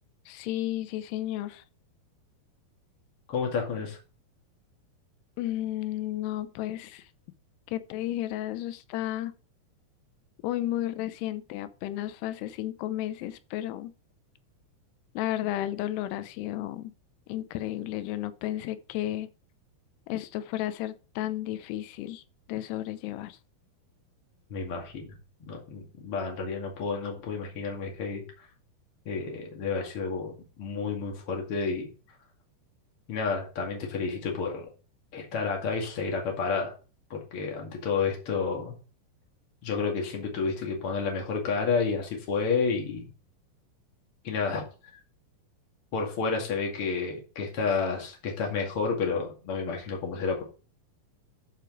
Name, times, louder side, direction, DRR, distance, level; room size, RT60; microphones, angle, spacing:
voice 1, 0.3-1.6 5.4-7.1 7.7-9.3 10.4-13.9 15.2-16.9 17.3-19.3 20.1-22.2 22.5-23.4, left 14 dB, 90° left, 2.8 m, -33 dB
voice 2, 3.3-4.0 24.5-25.2 25.5-28.2 29.1-31.9 33.1-34.7 35.1-36.7 37.1-38.7 39.6-43.1 44.2-44.6 45.9-50.4, left 5 dB, 40° left, 2.6 m, -30 dB
11.5 x 4.9 x 4.6 m
omnidirectional pair, 4.7 m